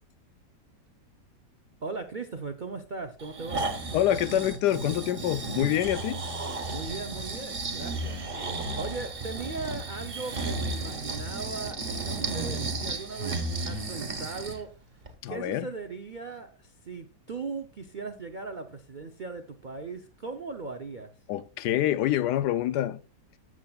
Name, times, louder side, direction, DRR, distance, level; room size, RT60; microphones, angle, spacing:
voice 1, 1.8-3.7 6.7-8.2 8.7-14.7 15.3-21.1, right 4 dB, 60° right, 0.5 m, -38 dB
Breathing, 3.2-14.6 15.1-15.2, right 2 dB, 35° right, 1.4 m, -33 dB
voice 2, 3.9-6.2 15.2-15.7 21.3-23.0, left 12 dB, 75° left, 1.1 m, -26 dB
13.5 x 7.4 x 2.4 m
omnidirectional pair, 1.9 m